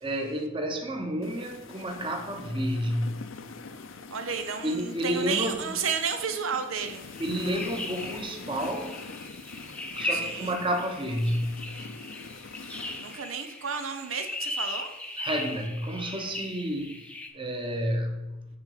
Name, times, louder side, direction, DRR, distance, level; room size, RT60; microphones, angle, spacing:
voice 1, 0.0-3.1 4.6-5.7 7.2-9.0 10.0-11.9 15.2-18.5, equal, 25° right, 1.1 m, -30 dB
sound 1, 1.2-13.2, left 4 dB, 70° left, 0.6 m, -44 dB
voice 2, 4.1-7.0 10.1-10.6 13.0-14.9, right 6 dB, 85° right, 0.7 m, -32 dB
sound 2, 6.7-17.3, left 1 dB, 5° left, 0.6 m, -38 dB
9.5 x 3.7 x 4.9 m
head